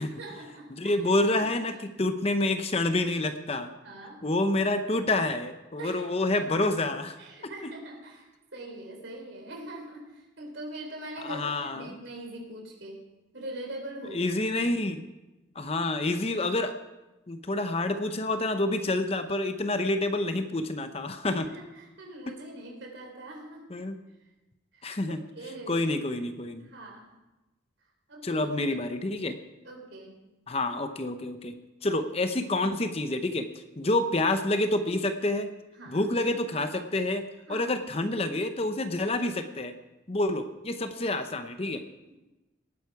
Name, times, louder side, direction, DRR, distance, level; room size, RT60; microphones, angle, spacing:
voice 1, 0.0-1.0 1.3-1.9 3.8-4.2 5.8-6.0 6.3-6.4 7.2-13.0 13.3-14.4 21.3-23.7 24.7-25.8 26.6-27.1 28.1-28.4 28.8-28.9 29.6-30.2 35.8-36.1 37.5-37.8 42.1-42.2, right 1 dB, 65° right, 1 dB, 3.8 m, -42 dB
voice 2, 0.7-3.7 4.2-7.2 11.2-12.0 14.1-15.0 15.6-16.8 17.3-21.5 22.3-22.4 23.7-24.0 24.8-25.2 25.7-26.7 28.2-29.4 30.5-31.5 31.8-35.5 35.9-37.2 37.5-39.7 40.1-41.8, left 2 dB, 30° left, 9 dB, 0.7 m, -28 dB
18.5 x 9.2 x 4.8 m, 1.0 s
head